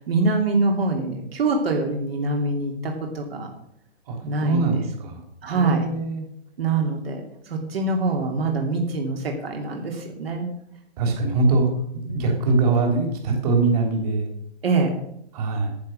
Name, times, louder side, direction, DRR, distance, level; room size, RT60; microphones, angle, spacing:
voice 1, 0.0-3.5 4.2-4.7 5.4-5.9 6.6-10.5 14.6-15.0, right 3 dB, 60° right, 2 dB, 2.8 m, -24 dB
voice 2, 4.4-5.2 5.5-6.3 11.0-14.3 15.3-15.7, right 3 dB, 35° right, 2 dB, 3.3 m, -22 dB
10.5 x 10.5 x 6.4 m, 0.76 s
hypercardioid pair, 165°, 34 cm